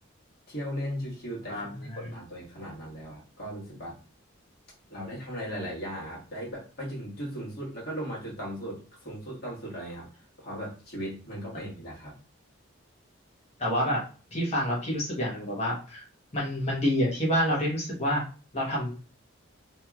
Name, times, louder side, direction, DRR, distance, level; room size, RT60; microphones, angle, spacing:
voice 1, 0.5-4.0 4.9-12.1, equal, 50° left, -5 dB, 1.4 m, -37 dB
voice 2, 1.5-2.0 13.6-14.0 14.3-16.0 16.3-18.2 18.5-18.9, equal, 30° left, -4 dB, 1.1 m, -28 dB
2.9 x 2.6 x 2.3 m, 0.36 s
head